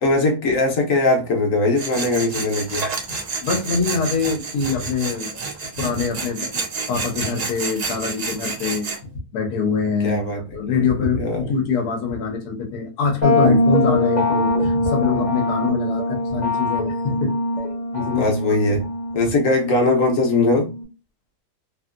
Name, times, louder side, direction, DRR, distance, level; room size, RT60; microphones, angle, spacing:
voice 1, 0.0-2.8 10.0-10.8 11.2-11.5 18.2-18.8 19.1-20.7, left 2 dB, 65° left, 1.2 m, -20 dB
Tools, 1.8-9.0, right 4 dB, 80° right, 0.3 m, -29 dB
voice 2, 3.4-5.4 5.8-6.6 6.9-8.9 9.3-17.3 17.9-18.3 18.7-18.8, left 5 dB, 80° left, 1.3 m, -24 dB
sound 1, 13.2-20.8, left 1 dB, 35° left, 0.9 m, -22 dB
3.0 x 2.6 x 2.4 m
omnidirectional pair, 1.6 m